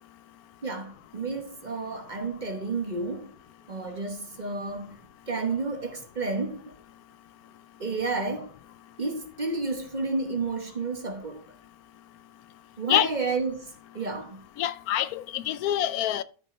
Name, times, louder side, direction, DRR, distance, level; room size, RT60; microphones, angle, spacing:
voice 1, 0.6-3.4 3.7-6.7 7.8-8.5 9.0-11.4 12.8-14.4, right 3 dB, 35° right, 1.1 m, -31 dB
voice 2, 14.6-16.2, left 12 dB, 80° left, 1.1 m, -26 dB
12.5 x 5.4 x 3.2 m
omnidirectional pair, 1.6 m